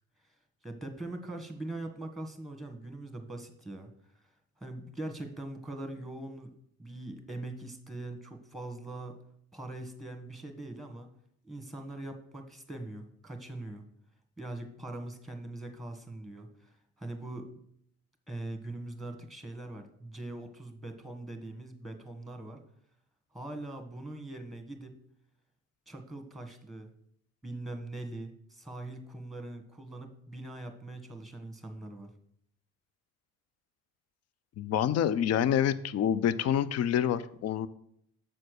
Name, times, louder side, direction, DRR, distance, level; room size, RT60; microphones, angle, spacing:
voice 1, 0.6-4.3 4.6-6.5 6.8-9.2 9.5-11.1 11.4-13.8 14.4-17.5 18.3-22.6 23.3-25.0 25.9-26.9 27.4-32.1, right 2 dB, ahead, 5 dB, 1.5 m, -42 dB
voice 2, 34.6-37.7, left 9 dB, 55° left, 16 dB, 0.5 m, -27 dB
7.5 x 4.3 x 6.5 m, 0.69 s
cardioid pair, 90°, 30 cm